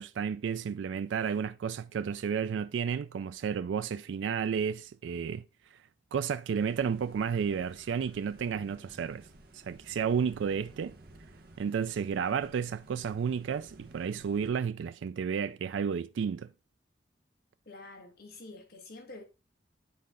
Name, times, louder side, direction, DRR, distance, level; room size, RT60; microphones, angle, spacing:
voice 1, 0.0-5.4 5.7-5.8 6.1-9.3 9.5-11.0 11.6-16.5, right 7 dB, 90° right, 0.3 m, -32 dB
sound 1, 6.6-14.5, right 1 dB, 55° right, 1.4 m, -54 dB
voice 2, 17.7-19.2, left 2 dB, 60° left, 1.6 m, -47 dB
9.5 x 4.1 x 3.7 m
head